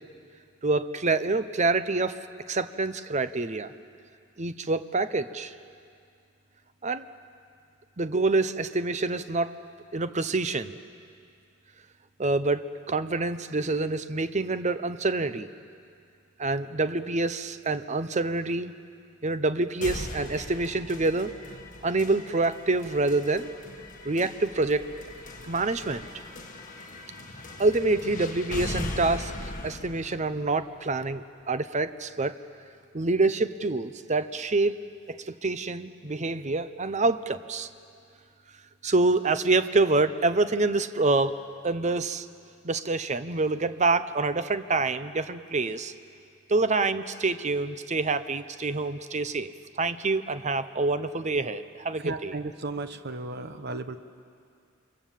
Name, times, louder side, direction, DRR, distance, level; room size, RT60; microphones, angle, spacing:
voice 1, 0.6-2.2 2.5-3.7 4.4-5.5 6.8-7.1 8.0-9.5 9.9-10.8 12.2-15.5 16.4-18.7 19.2-21.3 21.8-23.5 24.0-24.8 25.5-26.0 27.6-32.4 32.9-34.7 35.1-37.7 38.8-41.4 41.6-42.3 42.6-45.9 46.5-49.5 49.8-52.3, right 3 dB, 35° right, 12 dB, 0.8 m, -26 dB
sound 1, 19.8-31.8, left 2 dB, 40° left, 1.8 m, -40 dB
voice 2, 52.0-54.0, right 2 dB, 50° right, 9 dB, 1.2 m, -35 dB
29.0 x 25.0 x 7.5 m, 2.3 s
head